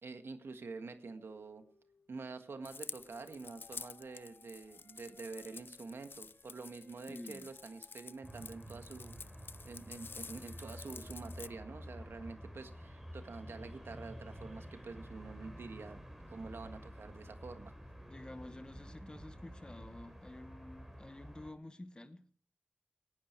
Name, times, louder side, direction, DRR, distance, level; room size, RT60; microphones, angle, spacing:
voice 1, 0.0-1.6 2.1-9.2 9.6-16.0 16.3-17.7, right 4 dB, 85° right, 1.7 m, -47 dB
sound 1, 1.2-20.9, left 2 dB, 40° left, 4.5 m, -67 dB
sound 2, 2.6-11.5, left 4 dB, 65° left, 0.6 m, -50 dB
voice 2, 7.1-7.5 18.1-22.3, left 1 dB, 20° left, 1.1 m, -50 dB
sound 3, 8.2-21.5, equal, 5° right, 3.8 m, -50 dB
18.5 x 11.0 x 4.6 m
wide cardioid pair, 90°, 4 cm